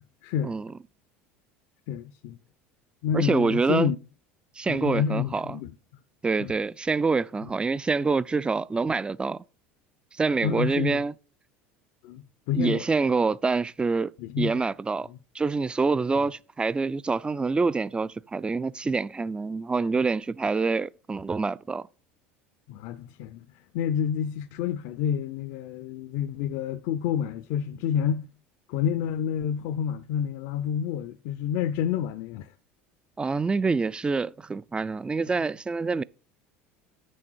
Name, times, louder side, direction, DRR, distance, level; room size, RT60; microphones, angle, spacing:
voice 1, 0.2-0.6 1.9-2.4 3.0-4.0 4.7-5.7 6.4-6.5 10.4-11.0 12.0-12.8 14.2-14.6 16.2-16.3 22.7-23.4 23.7-28.3 28.7-32.5, left 9 dB, 65° left, 0.5 m, -29 dB
voice 2, 3.1-3.9 4.6-5.6 6.2-9.4 10.2-11.1 12.5-14.1 14.4-15.1 15.3-21.9 33.2-36.0, right 4 dB, 15° right, 0.3 m, -26 dB
8.4 x 6.3 x 4.5 m
hypercardioid pair, 80°, 6 cm